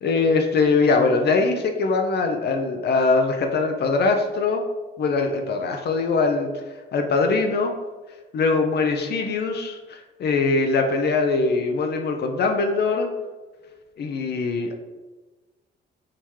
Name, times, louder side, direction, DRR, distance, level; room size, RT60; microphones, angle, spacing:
voice 1, 0.0-4.6 5.0-6.5 6.9-7.7 8.3-13.1 14.0-14.7, left 4 dB, 55° left, 4 dB, 0.6 m, -22 dB
3.7 x 3.0 x 4.5 m, 1.2 s
cardioid pair, 90°, 20 cm